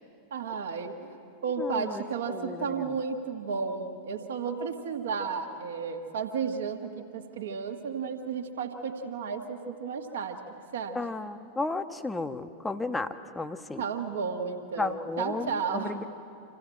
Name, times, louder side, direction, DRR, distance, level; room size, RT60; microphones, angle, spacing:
voice 1, 0.3-1.2 1.4-10.4 10.7-11.0 13.8-16.0, right 5 dB, 60° right, 3 dB, 1.5 m, -33 dB
voice 2, 1.6-2.0 2.3-3.0 10.9-13.8 14.8-16.1, left 3 dB, 10° left, 10 dB, 0.9 m, -33 dB
26.5 x 15.5 x 7.7 m, 2.7 s
figure-of-eight pair, 90°, 0 cm